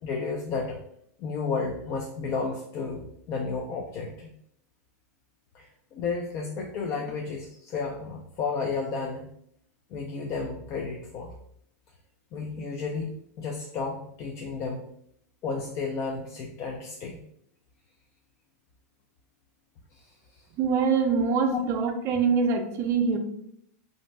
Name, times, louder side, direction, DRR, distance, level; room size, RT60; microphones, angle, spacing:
voice 1, 0.0-0.8 1.2-4.3 5.5-9.3 9.9-11.3 12.3-13.1 13.4-14.8 15.4-17.2 21.5-21.6, left 4 dB, 35° left, 1 dB, 0.3 m, -32 dB
voice 2, 20.6-23.2, right 5 dB, 35° right, 6 dB, 0.4 m, -24 dB
2.5 x 2.1 x 3.1 m, 0.71 s
hypercardioid pair, 130°, 8 cm